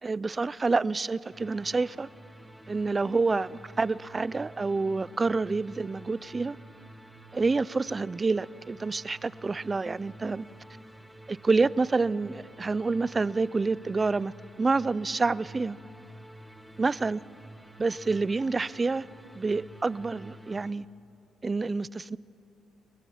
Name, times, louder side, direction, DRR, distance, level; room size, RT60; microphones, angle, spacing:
voice 1, 0.0-2.1 2.7-6.6 7.3-10.5 11.3-15.8 16.8-17.2 17.8-19.1 19.3-20.9 21.4-22.2, right 3 dB, 25° right, 0.4 m, -28 dB
sound 1, 1.3-20.7, right 1 dB, 5° right, 1.4 m, -49 dB
26.5 x 20.0 x 5.8 m
cardioid pair, 90°, 0 cm